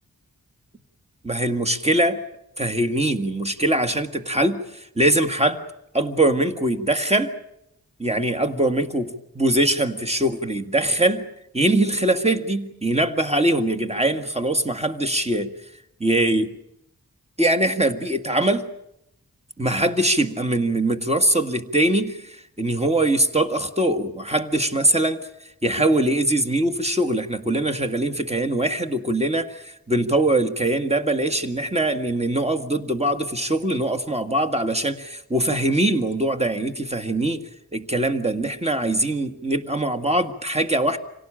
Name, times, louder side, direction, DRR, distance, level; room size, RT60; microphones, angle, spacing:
voice 1, 1.2-2.2 2.6-5.6 5.9-7.3 8.0-11.2 11.5-15.5 16.0-16.6 17.4-18.7 19.6-25.3 25.6-41.0, right 1 dB, 20° right, 7 dB, 1.9 m, -22 dB
26.5 x 17.5 x 8.9 m, 0.82 s
wide cardioid pair, 50°, 35 cm